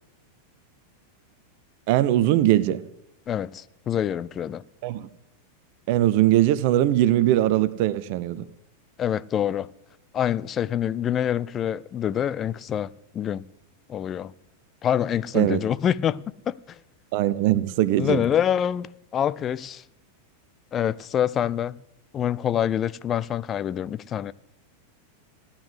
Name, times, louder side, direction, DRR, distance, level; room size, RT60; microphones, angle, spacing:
voice 1, 1.9-2.8 4.8-5.1 5.9-8.4 15.3-15.6 17.1-18.2, right 14 dB, 45° right, 0.7 m, -21 dB
voice 2, 3.3-4.6 9.0-9.7 10.1-13.4 13.9-14.3 14.8-16.8 18.0-19.8 20.7-21.8 22.1-24.3, left 9 dB, 25° left, 0.5 m, -26 dB
16.5 x 9.9 x 8.0 m
figure-of-eight pair, 90°, 0 cm